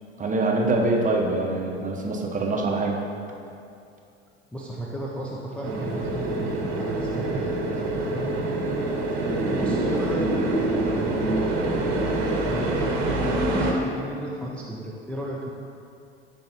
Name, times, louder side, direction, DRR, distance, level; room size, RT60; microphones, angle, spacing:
voice 1, 0.2-3.0, right 2 dB, 25° right, 0 dB, 0.8 m, -24 dB
voice 2, 4.5-8.5 9.6-11.5 12.5-15.5, equal, 5° left, -4 dB, 0.5 m, -34 dB
sound 1, 5.6-13.7, right 2 dB, 70° right, 0.9 m, -25 dB
10.5 x 3.4 x 2.9 m, 2.5 s
figure-of-eight pair, 70°, 33 cm